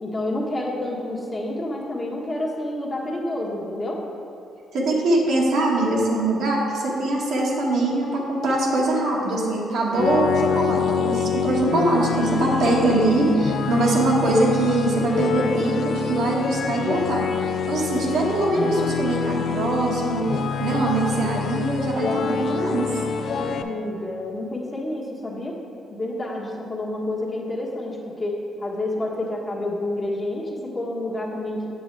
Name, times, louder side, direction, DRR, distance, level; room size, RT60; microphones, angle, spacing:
voice 1, 0.0-4.0 23.3-25.6 25.9-31.7, left 1 dB, 25° left, -3 dB, 1.3 m, -29 dB
voice 2, 4.7-17.3 17.7-20.3 20.6-22.9, right 2 dB, 75° right, -4 dB, 1.5 m, -22 dB
sound 1, 9.9-23.6, left 6 dB, 60° left, 0.4 m, -26 dB
7.8 x 7.1 x 3.4 m, 2.5 s
cardioid pair, 90°, 0 cm